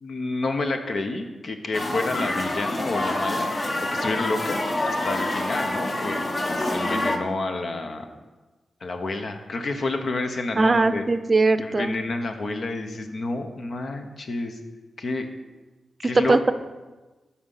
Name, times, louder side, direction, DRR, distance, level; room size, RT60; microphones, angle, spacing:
voice 1, 0.0-8.1 8.8-11.0 11.6-14.6 15.0-15.3 16.0-16.4, left 2 dB, 65° left, 5 dB, 1.0 m, -29 dB
sound 1, 1.7-7.2, left 1 dB, 40° left, 1.1 m, -27 dB
voice 2, 10.6-11.9 16.1-16.5, right 3 dB, 40° right, 11 dB, 0.5 m, -20 dB
12.5 x 4.3 x 5.7 m, 1.2 s
cardioid pair, 65°, 0 cm